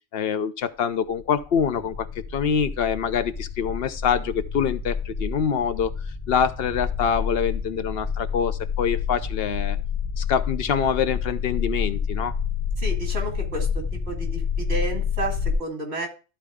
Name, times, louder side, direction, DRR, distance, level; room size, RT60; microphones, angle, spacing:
voice 1, 0.1-9.8 10.2-12.3, left 7 dB, 70° left, 11 dB, 0.9 m, -25 dB
sound 1, 1.1-15.5, left 6 dB, 45° left, 1.3 m, -29 dB
voice 2, 12.8-13.7 14.1-16.1, right 2 dB, 85° right, 2 dB, 2.6 m, -31 dB
12.5 x 4.3 x 3.5 m, 0.33 s
omnidirectional pair, 1.1 m